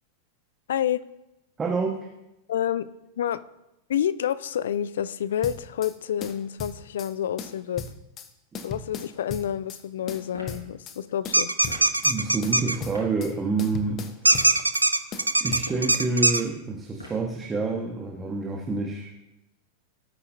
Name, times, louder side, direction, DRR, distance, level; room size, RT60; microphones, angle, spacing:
voice 1, 0.7-1.0 2.5-2.9 3.2-3.4 3.9-7.9 8.6-11.5, left 10 dB, 60° left, 16 dB, 0.5 m, -28 dB
voice 2, 1.6-2.0 12.0-14.6 15.4-19.1, right 3 dB, 15° right, 0 dB, 1.4 m, -28 dB
sound 1, 5.4-5.9 6.2-7.1 7.4-8.3 8.5-9.8 10.1-11.0 11.2-12.1 12.4-13.3 13.6-14.9 15.1-16.0, left 5 dB, 30° left, 1.0 m, -37 dB
sound 2, 10.3-10.6 11.6-11.9 12.9-13.1 14.2-14.6 15.5-15.9 17.0-17.3, left 1 dB, 80° left, 4.3 m, -42 dB
sound 3, 11.3-12.7 14.2-16.4, right 2 dB, 85° right, 0.4 m, -21 dB
18.5 x 8.5 x 2.7 m, 0.91 s
figure-of-eight pair, 90°, 0 cm